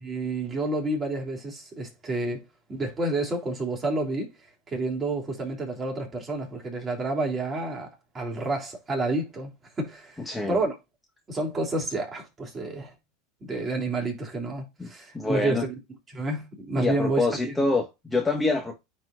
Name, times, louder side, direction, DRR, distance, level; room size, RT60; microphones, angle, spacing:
voice 1, 0.0-4.3 4.7-9.5 9.8-10.8 11.3-12.9 13.4-15.7 16.1-17.5, right 2 dB, 20° right, 3.2 m, -29 dB
voice 2, 10.2-10.6 14.8-14.9 15.1-15.6 16.7-18.7, left 3 dB, 10° left, 1.5 m, -26 dB
9.3 x 4.4 x 2.5 m
supercardioid pair, 125°, 0 cm